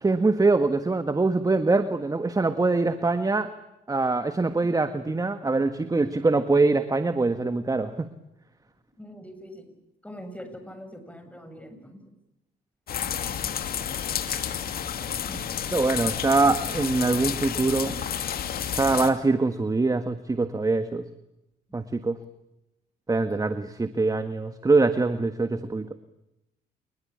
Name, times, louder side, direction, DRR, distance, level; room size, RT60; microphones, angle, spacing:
voice 1, 0.0-3.5 3.9-8.1 15.7-17.9 18.7-21.0 21.7-22.2 23.1-25.9, right 3 dB, 20° right, 10 dB, 1.6 m, -23 dB
voice 2, 9.0-9.8 10.0-12.0 15.2-15.9 17.9-18.0 23.2-23.4, equal, 10° left, 8 dB, 7.3 m, -43 dB
sound 1, 12.9-19.1, left 9 dB, 65° left, 2.5 m, -30 dB
28.0 x 21.0 x 8.7 m, 0.89 s
cardioid pair, 75°, 17 cm